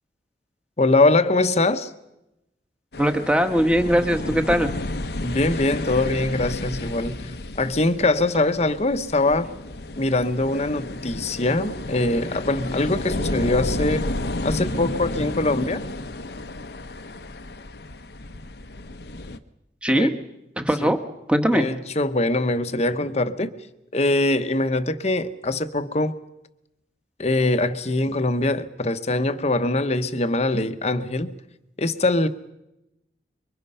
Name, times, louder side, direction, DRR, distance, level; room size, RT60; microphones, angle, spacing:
voice 1, 0.8-1.9 5.2-7.2 7.6-9.5 10.0-14.1 14.4-15.8 19.9-20.2 20.8-20.9 21.5-23.5 23.9-26.1 27.2-31.3 31.8-32.3, left 2 dB, 40° left, 1.0 m, -22 dB
sound 1, 2.9-19.4, left 2 dB, 65° left, 0.9 m, -32 dB
voice 2, 3.0-4.7 19.8-20.1 20.6-21.0 21.3-21.7, equal, 5° right, 1.4 m, -20 dB
26.0 x 23.5 x 5.6 m
head